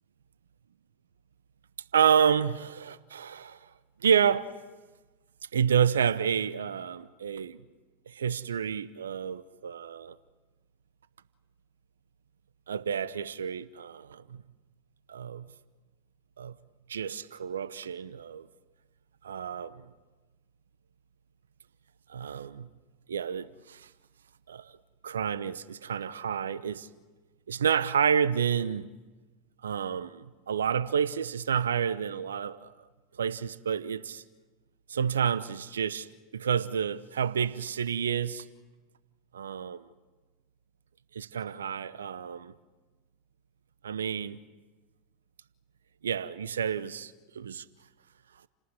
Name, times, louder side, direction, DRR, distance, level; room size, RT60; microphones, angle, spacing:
voice 1, 1.9-3.7 4.0-4.5 5.5-7.6 8.1-10.2 12.7-14.4 15.1-15.5 16.4-16.6 16.9-18.5 19.2-19.9 22.1-22.7 23.1-23.9 24.5-24.7 25.0-26.9 27.5-28.9 29.6-32.7 33.2-34.2 34.9-36.1 36.3-38.5 39.3-39.9 41.1-42.5 43.8-44.4 46.0-47.6, right 7 dB, 80° right, 1.0 m, -29 dB
29.5 x 18.5 x 9.8 m
hypercardioid pair, 85°, 0 cm